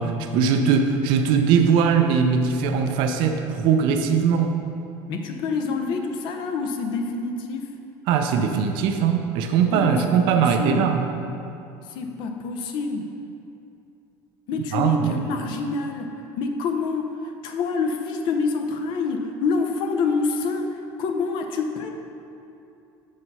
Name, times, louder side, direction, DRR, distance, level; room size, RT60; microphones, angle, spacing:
voice 1, 0.0-4.5 8.1-11.1 14.7-15.3, right 6 dB, 65° right, 5 dB, 0.5 m, -20 dB
voice 2, 5.1-7.7 9.7-10.0 10.3-10.9 11.9-13.1 14.5-17.1 17.4-21.9, left 4 dB, 60° left, 4 dB, 0.7 m, -27 dB
6.5 x 4.8 x 5.5 m, 2.7 s
cardioid pair, 140°, 9 cm